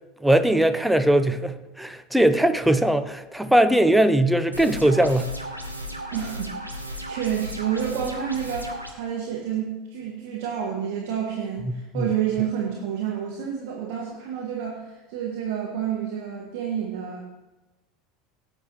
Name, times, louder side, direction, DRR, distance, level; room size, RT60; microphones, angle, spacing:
voice 1, 0.2-5.3 11.9-12.1, right 1 dB, 5° right, 10 dB, 0.8 m, -20 dB
sound 1, 4.5-8.9, equal, 90° right, 1.3 m, -35 dB
voice 2, 6.1-6.5 6.8-17.2, right 9 dB, 55° right, -2 dB, 1.7 m, -29 dB
17.5 x 9.2 x 3.0 m, 1.1 s
figure-of-eight pair, 75°, 0 cm